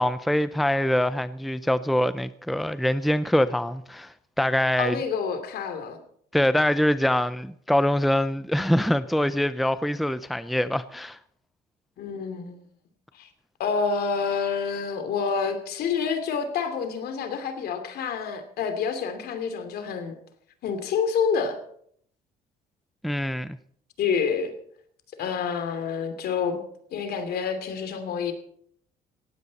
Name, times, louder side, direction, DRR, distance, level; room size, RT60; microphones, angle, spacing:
voice 1, 0.0-5.0 6.3-11.2 23.0-23.6, left 1 dB, ahead, 0.5 m, -24 dB
voice 2, 4.8-6.0 12.0-12.6 13.1-13.3 13.6-20.1 20.6-21.6 24.0-24.5 25.2-26.6 26.9-28.3, left 6 dB, 70° left, 2.9 m, -28 dB
18.5 x 15.0 x 4.2 m
cardioid pair, 110°, 17 cm